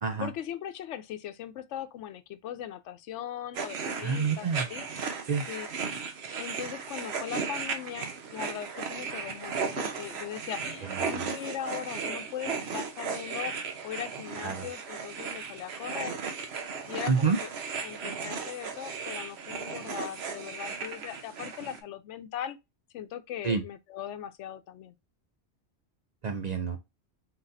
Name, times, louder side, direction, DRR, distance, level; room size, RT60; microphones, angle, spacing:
voice 1, 0.2-4.9 5.5-5.7 6.4-13.5 13.8-16.2 16.9-17.5 17.8-22.6 22.9-24.9, left 10 dB, 85° left, 0.9 m, -39 dB
sound 1, 3.5-21.8, right 5 dB, 65° right, 1.0 m, -36 dB
voice 2, 4.0-4.7 5.3-5.4 10.9-11.3 14.4-14.7 17.1-17.4 23.4-23.6 26.2-26.8, right 5 dB, 45° right, 0.6 m, -28 dB
4.0 x 3.9 x 2.5 m
omnidirectional pair, 1.2 m